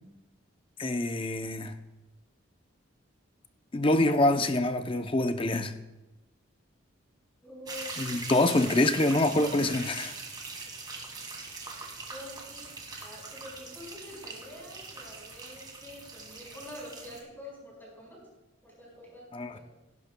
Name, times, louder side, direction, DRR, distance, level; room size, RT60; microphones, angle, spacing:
voice 1, 0.8-1.7 3.7-5.7 8.0-10.1 19.3-19.6, left 2 dB, 25° left, 0.5 m, -25 dB
voice 2, 7.4-8.0 11.7-12.7 13.0-18.2 18.6-19.6, left 1 dB, 10° left, 4.6 m, -46 dB
sound 1, 7.7-17.2, right 3 dB, 20° right, 1.7 m, -42 dB
16.5 x 12.0 x 2.2 m
head